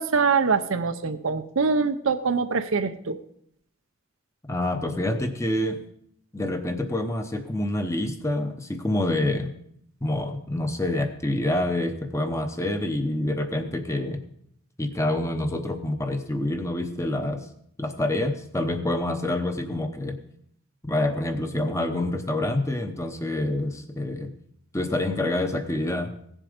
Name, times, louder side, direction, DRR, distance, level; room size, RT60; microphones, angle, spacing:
voice 1, 0.0-3.2, right 5 dB, 70° right, 10 dB, 0.7 m, -24 dB
voice 2, 4.5-5.8 6.3-9.6 10.0-14.2 14.8-17.5 17.8-20.2 20.8-24.3 24.7-26.1, left 1 dB, 15° left, 7 dB, 0.8 m, -27 dB
16.0 x 7.3 x 5.1 m, 0.69 s
head